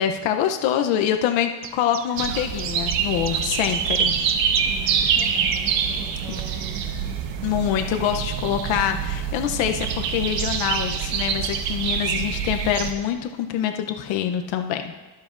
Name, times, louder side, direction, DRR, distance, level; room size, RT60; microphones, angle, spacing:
voice 1, 0.0-4.1 6.3-6.4 7.4-14.9, left 9 dB, 85° left, 6 dB, 0.8 m, -25 dB
Chirp tweet, 1.6-8.1, right 9 dB, 35° right, 0.4 m, -40 dB
sound 1, 2.2-12.9, right 7 dB, 85° right, 1.1 m, -25 dB
voice 2, 4.6-6.9, right 4 dB, 55° right, -5 dB, 1.8 m, -41 dB
22.5 x 7.6 x 2.5 m, 1.2 s
cardioid pair, 155°, 44 cm